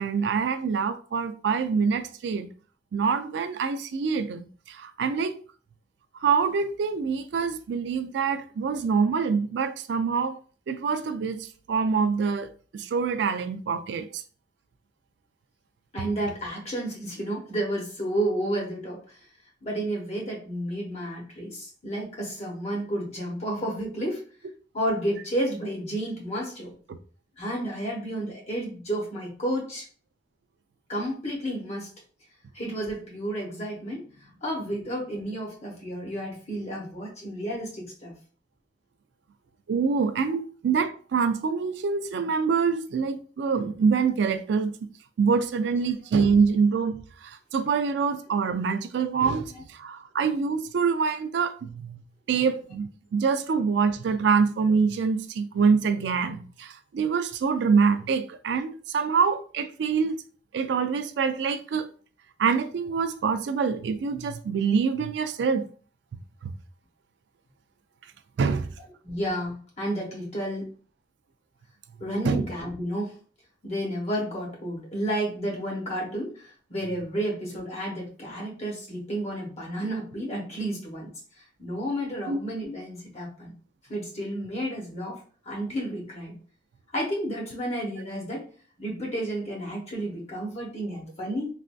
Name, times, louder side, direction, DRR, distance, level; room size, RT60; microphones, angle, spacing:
voice 1, 0.0-2.5 2.9-5.4 6.2-10.4 10.7-12.5 12.7-14.1 39.7-44.7 45.2-47.0 47.5-49.5 49.8-52.0 52.3-60.2 60.5-61.8 62.4-65.7 68.4-68.7 72.3-72.4 82.3-82.4, right 5 dB, 70° right, 0.3 m, -25 dB
voice 2, 15.9-19.2 19.6-24.2 24.7-26.8 27.4-29.8 30.9-31.9 32.5-38.1 49.5-49.6 69.0-70.7 72.0-73.2 73.6-81.1 81.6-83.5 83.9-85.2 85.4-86.4 86.9-88.4 88.8-91.5, right 1 dB, 35° left, 0.9 m, -31 dB
3.3 x 2.5 x 2.3 m
head